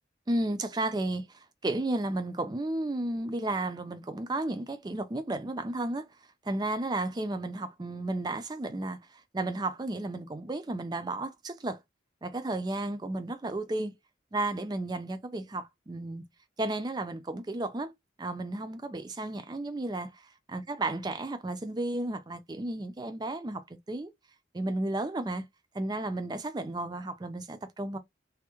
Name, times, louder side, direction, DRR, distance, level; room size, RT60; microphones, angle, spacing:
voice 1, 0.3-6.1 6.4-9.0 9.3-11.8 12.2-13.9 14.3-16.2 16.6-17.9 18.2-24.1 24.5-25.4 25.7-28.0, right 2 dB, 20° right, 0.4 m, -33 dB
3.4 x 2.1 x 2.9 m
head